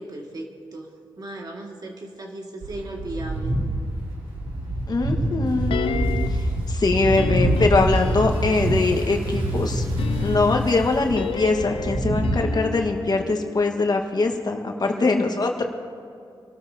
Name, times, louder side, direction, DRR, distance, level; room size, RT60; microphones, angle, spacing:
voice 1, 0.0-3.5 14.8-15.7, right 1 dB, 45° right, 0 dB, 2.2 m, -37 dB
sound 1, 2.6-12.4, right 1 dB, 85° right, 3.2 m, -26 dB
voice 2, 4.9-6.0 6.3-9.8 10.2-15.6, left 3 dB, 45° left, 3 dB, 1.6 m, -22 dB
sound 2, 5.7-6.5 7.2-8.8 9.8-14.0 14.3-14.4, left 7 dB, 75° left, 0.5 m, -31 dB
26.5 x 12.5 x 2.9 m, 2.4 s
cardioid pair, 60°, 9 cm